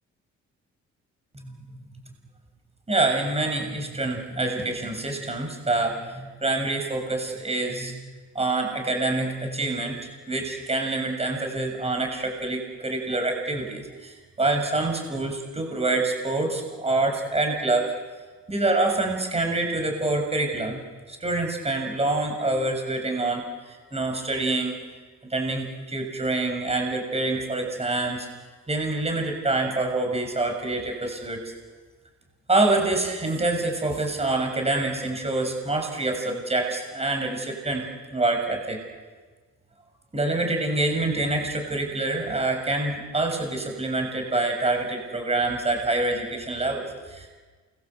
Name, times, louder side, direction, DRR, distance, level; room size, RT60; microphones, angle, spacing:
voice 1, 2.9-8.0 8.4-17.9 18.5-20.8 21.1-24.7 25.2-28.3 28.7-31.4 32.5-38.8 40.1-47.4, right 2 dB, 20° right, 3 dB, 6.9 m, -26 dB
28.5 x 23.0 x 8.2 m, 1.4 s
cardioid pair, 90°, 30 cm